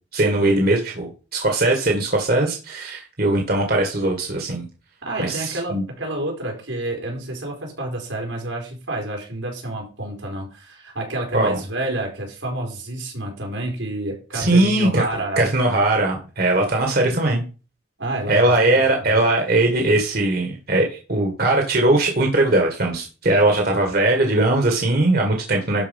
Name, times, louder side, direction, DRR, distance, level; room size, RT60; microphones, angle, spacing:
voice 1, 0.1-4.6 5.2-5.8 11.3-11.6 14.3-15.0 15.4-17.4 18.3-25.8, right 2 dB, 50° right, 2 dB, 1.9 m, -20 dB
voice 2, 5.0-15.5 18.0-19.2, right 1 dB, 90° right, 0 dB, 4.4 m, -29 dB
12.0 x 4.8 x 5.4 m, 0.35 s
head